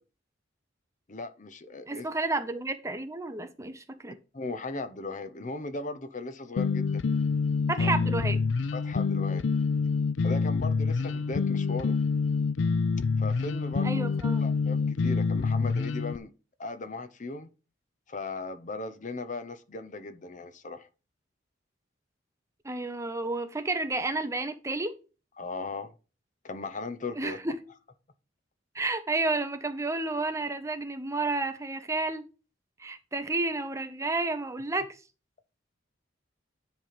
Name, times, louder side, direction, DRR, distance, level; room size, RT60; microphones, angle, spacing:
voice 1, 1.1-2.1 4.3-7.0 7.8-7.9 8.7-9.4 10.2-12.0 13.2-14.1 14.3-16.3 16.6-17.5 18.1-20.9 25.4-25.9 26.4-27.4, left 3 dB, 40° left, 0.8 m, -37 dB
voice 2, 1.9-4.2 7.7-8.4 13.8-14.4 22.6-24.9 27.2-27.6 28.7-32.3 32.8-34.9, right 2 dB, 15° right, 0.7 m, -31 dB
sound 1, 6.6-16.2, left 4 dB, 70° left, 0.4 m, -27 dB
10.0 x 3.5 x 5.9 m
head